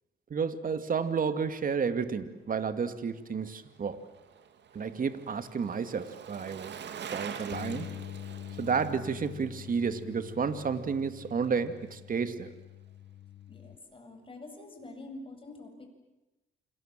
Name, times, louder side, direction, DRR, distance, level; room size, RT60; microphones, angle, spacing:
voice 1, 0.3-4.0 4.7-6.7 7.1-7.9 8.6-12.5, right 6 dB, 45° right, 10 dB, 2.3 m, -31 dB
Bicycle, 3.2-11.6 11.9-12.0, right 8 dB, 60° right, 2.7 m, -46 dB
Bass guitar, 7.5-13.8, left 11 dB, 60° left, 0.9 m, -45 dB
voice 2, 13.5-15.9, left 2 dB, 25° left, 4 dB, 7.9 m, -46 dB
29.0 x 26.5 x 7.7 m, 1.0 s
cardioid pair, 90°, 20 cm